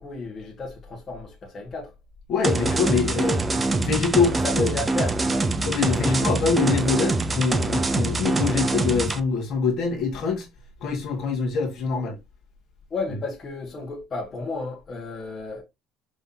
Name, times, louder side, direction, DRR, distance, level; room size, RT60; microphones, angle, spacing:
voice 1, 0.0-1.9 4.4-5.4 12.9-15.6, left 3 dB, 25° left, 1.5 m, -33 dB
voice 2, 2.3-4.7 5.6-10.5 10.8-12.2, left 5 dB, 45° left, 1.5 m, -24 dB
sound 1, 2.4-9.2, right 2 dB, 15° right, 0.5 m, -24 dB
5.5 x 3.4 x 2.7 m
cardioid pair, 155°, 0 cm